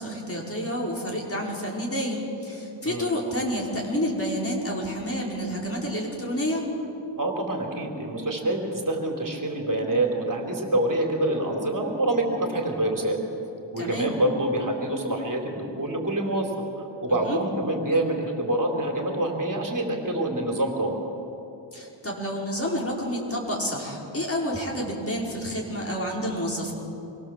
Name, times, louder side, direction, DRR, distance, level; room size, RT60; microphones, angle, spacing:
voice 1, 0.0-6.7 13.8-14.1 17.1-17.4 21.7-26.7, equal, 30° left, -3 dB, 5.4 m, -29 dB
voice 2, 7.2-13.2 13.7-16.5 17.0-21.0, right 1 dB, 40° right, 1 dB, 3.8 m, -26 dB
27.0 x 23.0 x 7.7 m, 2.9 s
wide cardioid pair, 105°, 47 cm